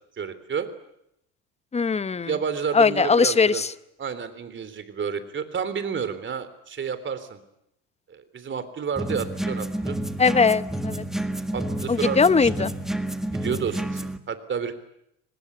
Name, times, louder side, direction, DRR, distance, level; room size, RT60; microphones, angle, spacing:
voice 1, 0.2-0.7 2.3-3.6 4.0-7.4 8.1-10.0 11.5-12.5 13.3-14.8, right 6 dB, 35° right, 12 dB, 3.5 m, -30 dB
voice 2, 1.7-2.3 2.7-3.7 10.2-11.0 11.9-12.7, left 5 dB, 20° left, 15 dB, 0.9 m, -20 dB
sound 1, 9.0-14.2, right 1 dB, ahead, 1.8 m, -29 dB
24.5 x 20.5 x 9.7 m, 0.80 s
supercardioid pair, 110°, 35 cm